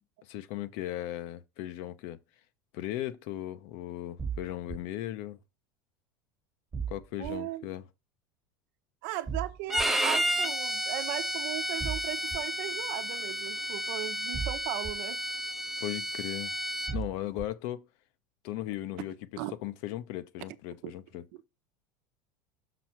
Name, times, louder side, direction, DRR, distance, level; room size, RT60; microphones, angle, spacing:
voice 1, 0.3-2.2 2.7-5.4 6.9-7.8 15.8-16.5 16.9-17.9 18.4-19.1 19.6-21.4, left 14 dB, 65° left, 0.7 m, -37 dB
sound 1, 4.2-4.8 6.7-7.3 9.3-9.8 11.8-12.4 14.3-14.9 16.9-17.4, right 6 dB, 20° right, 1.2 m, -35 dB
voice 2, 7.2-7.7 9.0-15.2 19.4-19.5 20.8-20.9, right 15 dB, 70° right, 0.9 m, -37 dB
Bowed string instrument, 9.7-17.0, equal, 5° right, 0.6 m, -32 dB
6.1 x 6.0 x 4.5 m
supercardioid pair, 115°, 10 cm